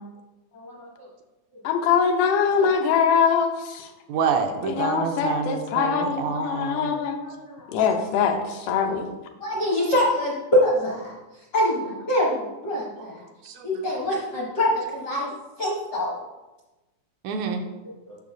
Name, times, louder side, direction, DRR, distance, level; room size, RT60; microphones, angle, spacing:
voice 1, 0.5-0.9 2.6-2.7 6.7-7.7 9.4-11.1 11.5-13.2 13.6-15.3 15.6-16.2 18.1-18.2, left 1 dB, 65° left, -5 dB, 1.0 m, -25 dB
voice 2, 1.7-3.5 4.8-7.2 7.7-8.4 8.7-9.1, left 6 dB, 85° left, 4 dB, 2.3 m, -22 dB
voice 3, 2.4-2.7 4.1-6.9 9.5-9.6 13.0-13.1 13.4-13.8 17.2-17.6, right 6 dB, 80° right, 4 dB, 1.9 m, -28 dB
8.4 x 6.4 x 2.6 m, 1.1 s
omnidirectional pair, 3.5 m